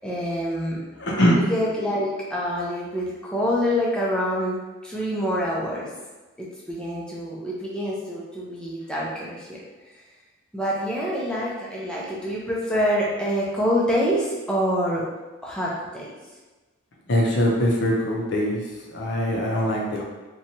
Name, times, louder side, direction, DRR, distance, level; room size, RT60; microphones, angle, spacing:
voice 1, 0.0-0.8 1.4-4.6 4.8-5.9 6.4-9.6 10.5-15.0 15.4-16.1, equal, 5° left, -5 dB, 0.4 m, -26 dB
voice 2, 1.0-1.4 17.1-18.6 18.9-20.0, equal, 60° left, -2 dB, 0.6 m, -22 dB
2.8 x 2.2 x 2.7 m, 1.2 s
head